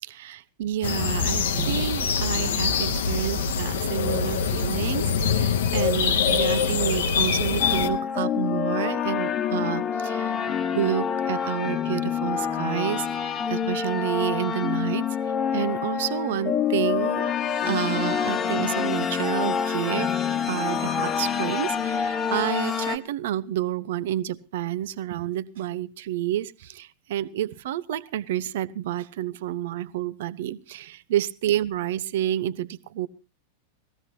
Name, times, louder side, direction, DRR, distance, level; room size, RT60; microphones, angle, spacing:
voice 1, 0.0-10.4 10.7-15.1 15.5-17.3 17.6-20.1 20.5-33.1, right 12 dB, 55° right, 0.6 m, -29 dB
sound 1, 0.8-7.9, left 6 dB, 60° left, 0.8 m, -24 dB
sound 2, 7.6-23.0, left 7 dB, 30° left, 1.1 m, -27 dB
19.5 x 15.0 x 2.8 m
figure-of-eight pair, 90°, 0 cm